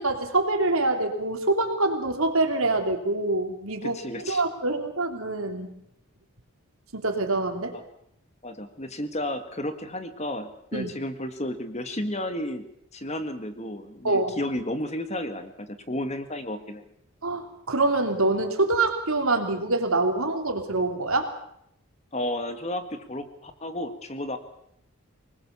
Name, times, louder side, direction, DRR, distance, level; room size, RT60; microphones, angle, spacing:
voice 1, 0.0-4.0 4.2-5.7 6.9-7.7 10.7-10.9 14.0-14.4 17.2-21.3, right 2 dB, 70° right, 4 dB, 3.4 m, -25 dB
voice 2, 3.8-4.4 7.7-7.8 8.4-12.6 12.9-16.8 22.1-24.4, left 1 dB, 30° left, 9 dB, 1.7 m, -32 dB
24.5 x 20.5 x 7.1 m, 0.74 s
head